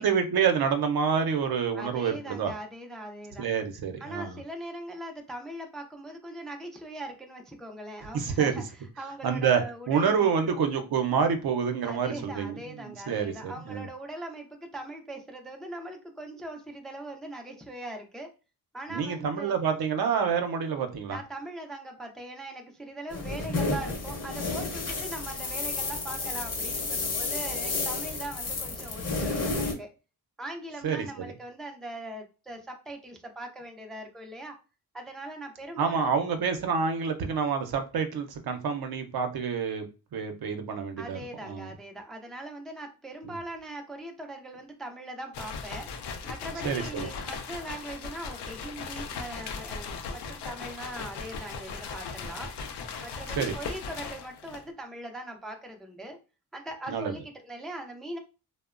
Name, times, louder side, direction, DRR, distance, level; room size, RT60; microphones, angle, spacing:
voice 1, 0.0-2.5 3.4-4.4 8.1-8.5 9.2-9.6 9.9-13.9 18.9-21.2 30.8-31.3 35.8-39.9 40.1-41.7 43.2-43.4 46.6-47.1 53.4-53.6 56.9-57.1, right 6 dB, 65° right, 6 dB, 0.6 m, -28 dB
voice 2, 1.7-3.5 4.0-8.6 9.0-10.5 11.8-18.3 18.7-19.6 21.1-29.9 30.4-34.6 34.9-36.1 41.0-45.9 46.2-52.5 53.0-56.2 56.5-58.2, right 1 dB, ahead, 3 dB, 0.4 m, -41 dB
sound 1, 23.1-29.7, left 3 dB, 40° left, 0.9 m, -31 dB
sound 2, 45.3-54.7, left 5 dB, 80° left, 0.5 m, -38 dB
2.8 x 2.1 x 2.4 m, 0.32 s
cardioid pair, 105°, 39 cm